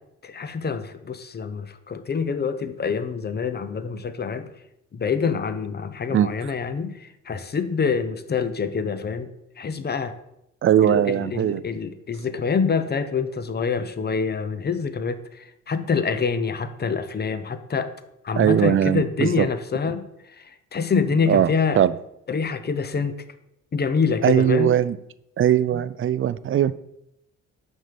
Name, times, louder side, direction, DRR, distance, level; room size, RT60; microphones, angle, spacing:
voice 1, 0.2-4.5 4.9-9.3 9.6-10.1 10.8-17.9 18.2-20.0 20.4-20.5 20.7-21.8 22.3-23.2 23.7-24.8, left 5 dB, 35° left, 11 dB, 0.8 m, -26 dB
voice 2, 6.1-6.5 10.6-11.6 18.4-19.5 21.3-21.5 21.8-21.9 24.2-25.0 25.4-26.7, right 10 dB, 45° right, 17 dB, 0.4 m, -20 dB
6.3 x 5.5 x 6.8 m, 0.82 s
cardioid pair, 90°, 30 cm